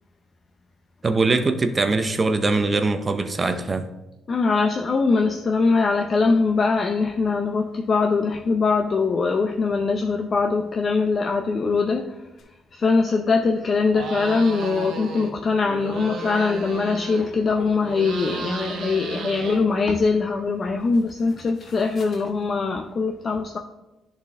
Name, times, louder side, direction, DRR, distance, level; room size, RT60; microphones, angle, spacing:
voice 1, 1.0-3.9, right 3 dB, 30° right, 9 dB, 0.6 m, -22 dB
voice 2, 4.3-12.1 12.7-23.6, left 4 dB, 45° left, 3 dB, 0.5 m, -22 dB
sound 1, 12.4-12.5 15.7-19.9 20.5-20.6 20.9-22.3, left 4 dB, 60° left, 1.1 m, -38 dB
sound 2, 13.9-15.3 15.6-17.4 17.8-20.0, right 5 dB, 75° right, 1.2 m, -34 dB
10.5 x 4.3 x 3.5 m, 0.99 s
cardioid pair, 90°, 0 cm